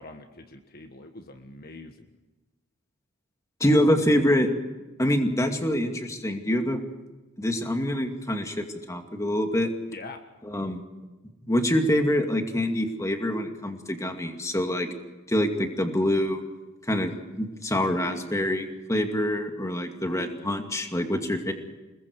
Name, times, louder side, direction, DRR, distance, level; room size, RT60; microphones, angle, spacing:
voice 1, 0.0-2.1 9.9-10.2, left 2 dB, 45° left, 6 dB, 1.5 m, -43 dB
voice 2, 3.6-4.5 5.0-6.8 7.4-9.7 10.4-10.8 11.4-14.9 15.3-16.4 16.9-17.1 17.4-21.5, equal, 15° left, 4 dB, 2.4 m, -25 dB
29.5 x 20.5 x 4.8 m, 1.1 s
head